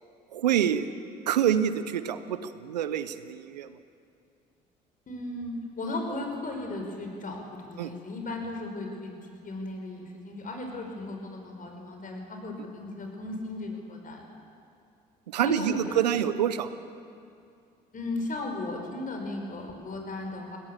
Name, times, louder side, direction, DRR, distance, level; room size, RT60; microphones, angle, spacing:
voice 1, 0.3-0.9 1.3-3.8 7.8-7.9 15.3-16.7, right 10 dB, 90° right, 13 dB, 0.7 m, -27 dB
voice 2, 5.1-9.1 9.4-14.2 15.4-16.2 17.9-20.6, left 2 dB, 40° left, 2 dB, 5.4 m, -36 dB
21.5 x 17.5 x 7.4 m, 2.5 s
hypercardioid pair, 55°, 21 cm